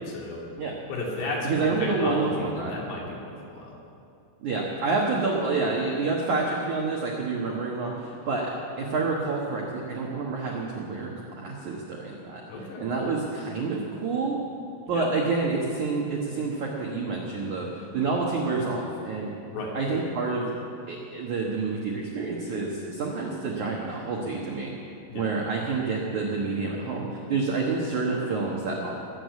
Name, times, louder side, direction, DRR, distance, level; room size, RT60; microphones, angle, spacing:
voice 1, 0.1-0.4 0.9-3.7 12.5-12.8 14.9-15.1 19.5-19.7 25.1-25.3, left 2 dB, 60° left, -3 dB, 4.7 m, -34 dB
voice 2, 1.4-2.8 4.4-8.5 8.8-11.1 11.4-12.4 12.8-14.4 14.9-17.7 17.9-19.3 19.7-20.5 20.9-24.7 25.1-28.9, right 3 dB, 75° right, -2 dB, 1.7 m, -28 dB
21.0 x 8.3 x 8.3 m, 2.6 s
omnidirectional pair, 5.9 m